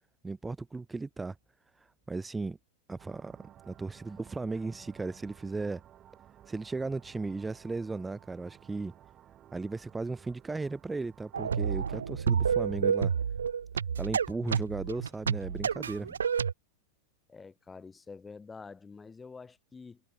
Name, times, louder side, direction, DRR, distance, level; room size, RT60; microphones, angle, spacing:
voice 1, 0.2-1.4 1.8-2.6 2.9-3.3 3.6-5.8 6.5-8.9 9.5-13.1 14.0-16.2, right 3 dB, 10° right, 2.7 m, -36 dB
sound 1, 3.0-12.0, right 11 dB, 30° right, 5.3 m, -56 dB
sound 2, 11.3-16.5, right 7 dB, 70° right, 1.1 m, -29 dB
voice 2, 17.3-20.0, left 4 dB, 15° left, 4.0 m, -47 dB
figure-of-eight pair, 90°, 0 cm